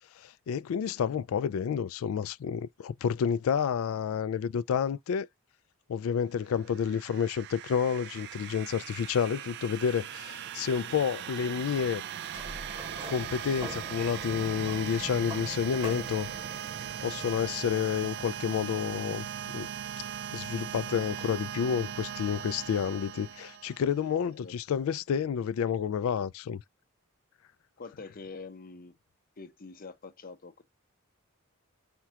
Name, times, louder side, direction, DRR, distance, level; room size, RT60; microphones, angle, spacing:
voice 1, 0.2-5.3 5.9-12.0 13.1-16.3 17.0-19.3 19.5-19.7 20.3-26.6, left 7 dB, 80° left, 0.3 m, -30 dB
sound 1, 6.5-24.1, right 9 dB, 55° right, 0.3 m, -39 dB
Sliding door, 12.1-17.8, right 1 dB, 25° right, 1.1 m, -44 dB
voice 2, 27.8-29.0 29.4-30.6, left 4 dB, 45° left, 0.7 m, -45 dB
4.4 x 2.4 x 2.8 m
head